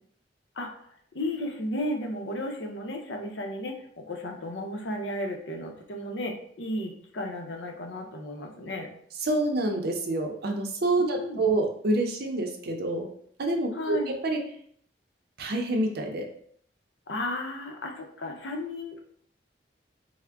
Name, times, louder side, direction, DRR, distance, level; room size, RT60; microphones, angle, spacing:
voice 1, 1.1-8.9 11.0-11.4 13.7-14.1 17.1-19.0, left 1 dB, 85° left, 3 dB, 0.6 m, -34 dB
voice 2, 9.2-13.1 13.4-14.4 15.4-16.3, right 2 dB, 60° right, 2 dB, 0.6 m, -27 dB
3.5 x 2.1 x 3.4 m, 0.63 s
head